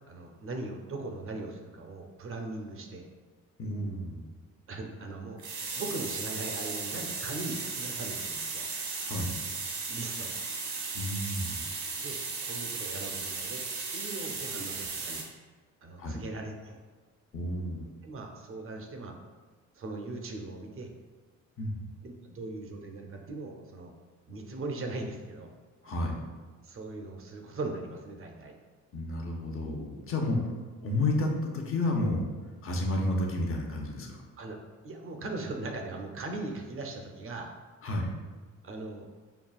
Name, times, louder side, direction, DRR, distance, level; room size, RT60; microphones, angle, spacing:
voice 1, 0.1-3.1 4.7-5.4 5.7-8.7 9.9-10.4 12.0-13.6 13.9-15.2 15.8-16.8 18.0-19.1 19.7-20.9 22.0-23.9 24.3-25.5 26.6-28.6 30.2-30.4 34.4-34.6 34.8-37.5 38.6-39.1, right 2 dB, 45° right, 3 dB, 0.6 m, -39 dB
voice 2, 3.6-4.3 9.0-9.3 10.9-11.6 16.0-16.2 17.3-17.9 21.6-21.8 25.8-26.2 28.9-30.5 30.8-32.2 32.6-34.2 37.8-38.1, left 1 dB, 45° left, 1 dB, 0.8 m, -31 dB
sound 1, 5.4-15.2, right 4 dB, 75° right, 0.9 m, -36 dB
5.5 x 2.3 x 2.3 m, 1.4 s
cardioid pair, 90°, 30 cm